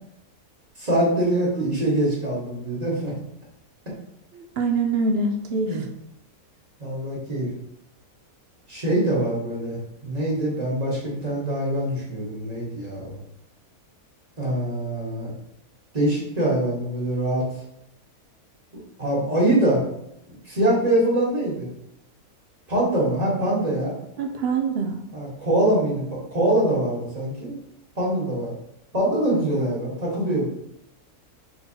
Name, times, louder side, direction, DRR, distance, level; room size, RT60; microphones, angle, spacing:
voice 1, 0.8-3.1 5.6-5.8 6.8-7.5 8.7-13.2 14.4-15.3 15.9-17.5 19.0-19.8 20.4-21.7 22.7-24.0 25.1-27.5 27.9-28.5 28.9-30.4, right 1 dB, 30° right, -5 dB, 1.4 m, -24 dB
voice 2, 4.3-5.8 24.2-25.0, right 3 dB, 65° right, 4 dB, 0.6 m, -24 dB
4.4 x 3.9 x 2.8 m, 0.82 s
omnidirectional pair, 1.5 m